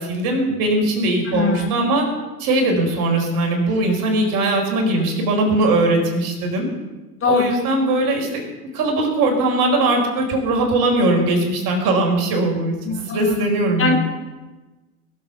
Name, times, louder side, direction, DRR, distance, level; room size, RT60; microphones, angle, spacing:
voice 1, 0.0-2.1 2.4-6.7 7.3-8.4 8.7-12.8 13.1-14.0, right 2 dB, 50° right, 1 dB, 4.7 m, -20 dB
voice 2, 1.3-1.7 7.2-7.5 12.9-13.5 13.8-14.0, left 4 dB, 30° left, 1 dB, 3.5 m, -21 dB
21.5 x 7.5 x 7.1 m, 1.2 s
hypercardioid pair, 85°, 44 cm